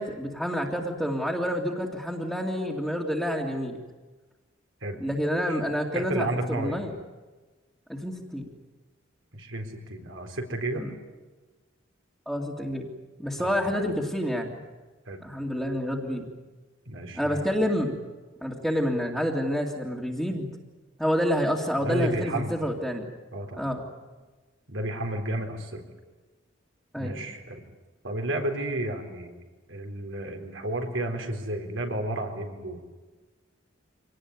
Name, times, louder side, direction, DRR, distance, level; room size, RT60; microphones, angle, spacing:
voice 1, 0.0-3.8 5.0-6.9 7.9-8.5 10.8-10.9 12.3-12.9 13.2-14.5 15.2-16.3 17.1-18.0 18.4-20.5 21.0-23.1 23.6-23.8 26.9-27.2, equal, ahead, -5 dB, 2.4 m, -28 dB
voice 2, 5.9-6.8 9.3-10.8 13.4-13.8 15.1-15.2 16.9-17.6 21.8-22.6 23.3-23.7 24.7-25.8 26.9-27.6 28.0-29.3 29.7-32.8, right 1 dB, 75° right, 3 dB, 4.1 m, -32 dB
25.5 x 19.0 x 9.7 m, 1.2 s
head